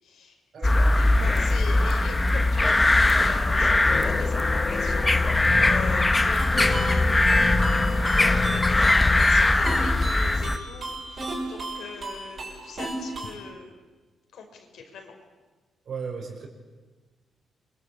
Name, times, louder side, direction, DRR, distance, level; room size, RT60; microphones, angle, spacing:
voice 1, 0.0-0.4 0.8-13.7 14.3-15.2, left 5 dB, 75° left, 4 dB, 5.4 m, -41 dB
voice 2, 0.5-1.1 5.5-5.7 15.8-16.5, right 5 dB, 55° right, 3 dB, 6.1 m, -37 dB
sound 1, 0.6-10.6, left 2 dB, 15° left, 1.2 m, -21 dB
sound 2, 3.2-3.6 3.8-10.6, left 4 dB, 40° left, 1.5 m, -31 dB
sound 3, 6.4-13.4, right 2 dB, 40° right, 6.6 m, -35 dB
27.5 x 24.0 x 8.7 m, 1.3 s
cardioid pair, 130°, 0 cm